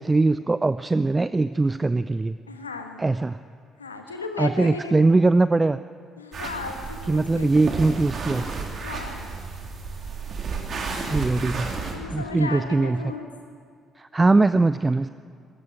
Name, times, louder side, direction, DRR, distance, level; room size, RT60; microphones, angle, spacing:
voice 1, 0.0-2.4 3.0-3.4 4.4-5.8 7.1-8.4 11.1-11.8 12.1-13.0 14.0-15.1, right 3 dB, 20° right, 14 dB, 0.4 m, -21 dB
voice 2, 2.5-3.1 3.8-4.9 6.2-7.6 8.7-9.3 11.9-13.3, left 4 dB, 85° left, 5 dB, 1.3 m, -35 dB
sound 1, 6.3-11.9, right 4 dB, 45° right, 3.0 m, -32 dB
20.5 x 14.0 x 9.2 m, 2.2 s
figure-of-eight pair, 45°, 0 cm